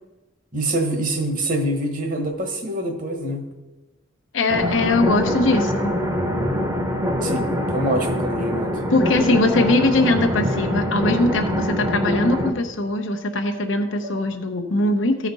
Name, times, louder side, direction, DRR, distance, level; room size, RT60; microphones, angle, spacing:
voice 1, 0.5-3.4 7.2-8.8 14.0-14.1, right 1 dB, 45° right, 4 dB, 1.2 m, -25 dB
voice 2, 4.3-5.9 8.9-15.3, left 2 dB, 85° left, 5 dB, 0.8 m, -21 dB
sound 1, 4.5-12.5, equal, 20° right, 0.8 m, -24 dB
14.5 x 5.0 x 4.1 m, 1.1 s
head